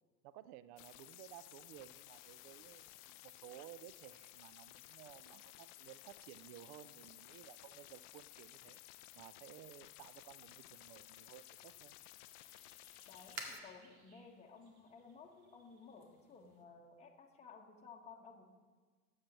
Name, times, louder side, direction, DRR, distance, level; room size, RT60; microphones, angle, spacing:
voice 1, 0.2-8.8 9.1-11.9, right 13 dB, 30° right, 16 dB, 0.4 m, -56 dB
sound 1, 0.8-13.6, left 17 dB, 35° left, 0.4 m, -57 dB
sound 2, 11.4-16.6, right 3 dB, 65° right, 2.0 m, -55 dB
voice 2, 13.1-18.5, left 5 dB, 15° left, -1 dB, 1.3 m, -56 dB
20.0 x 7.9 x 3.0 m, 1.4 s
figure-of-eight pair, 90°, 45 cm